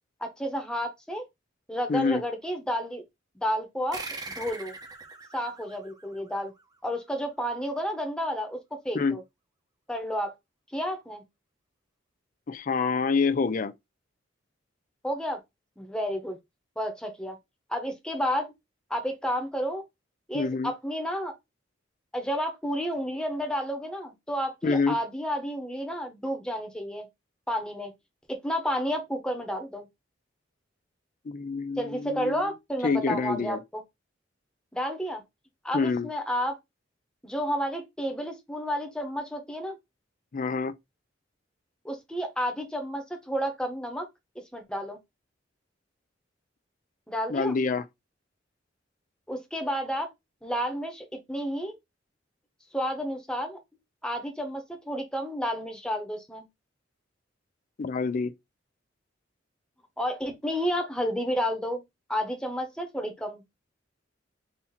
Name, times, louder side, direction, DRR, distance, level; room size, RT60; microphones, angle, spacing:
voice 1, 0.2-1.2 1.7-3.0 3.3-4.0 4.4-4.7 5.3-6.5 6.8-8.6 8.8-9.2 9.9-10.3 10.7-11.2 15.0-15.4 15.8-16.4 16.8-17.4 17.7-18.5 18.9-19.8 20.3-21.3 22.1-27.1 27.5-27.9 28.3-29.9 31.8-33.8 34.7-35.2 35.6-36.6 37.2-39.8 41.8-44.1 44.5-45.0 47.1-47.6 49.3-50.1 50.4-51.8 52.7-53.6 54.0-56.5 60.0-61.8 62.1-63.4, equal, 5° left, 1.0 m, -31 dB
voice 2, 1.9-2.2 8.9-9.2 12.5-13.7 20.3-20.7 24.6-25.0 31.3-32.5 32.8-33.6 35.7-36.1 40.3-40.7 47.3-47.8 57.8-58.3, left 4 dB, 45° left, 0.4 m, -27 dB
sound 1, 3.9-6.9, right 3 dB, 20° right, 0.8 m, -42 dB
4.1 x 2.8 x 4.2 m
head